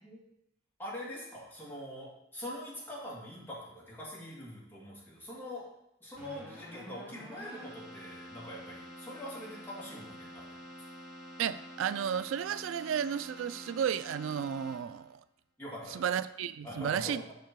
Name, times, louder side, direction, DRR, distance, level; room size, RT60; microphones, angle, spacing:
voice 1, 0.8-5.6 6.0-10.6 15.6-16.1 16.6-17.1, left 1 dB, 10° left, -6 dB, 2.5 m, -44 dB
Keyboard (musical), 6.1-15.1, equal, 5° right, 2.4 m, -48 dB
voice 2, 11.4-15.2 15.9-17.2, right 8 dB, 90° right, 15 dB, 0.3 m, -33 dB
6.6 x 5.7 x 4.6 m, 0.81 s
head